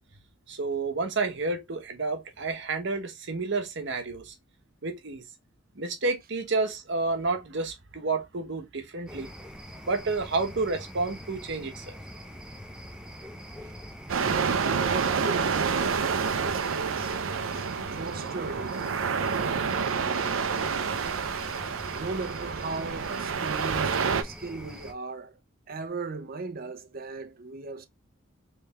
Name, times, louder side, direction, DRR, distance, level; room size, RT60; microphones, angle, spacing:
voice 1, 0.5-4.3 4.8-5.2 5.8-9.3 9.9-11.8, right 3 dB, 65° right, 1.0 m, -30 dB
sound 1, 9.1-24.9, equal, 5° right, 0.6 m, -44 dB
sound 2, 14.1-24.2, right 6 dB, 85° right, 0.5 m, -28 dB
voice 2, 14.2-17.2 17.5-17.7 17.9-18.8 19.1-20.6 21.9-25.4 25.7-27.9, right 3 dB, 50° right, 0.7 m, -38 dB
3.3 x 3.2 x 3.3 m
head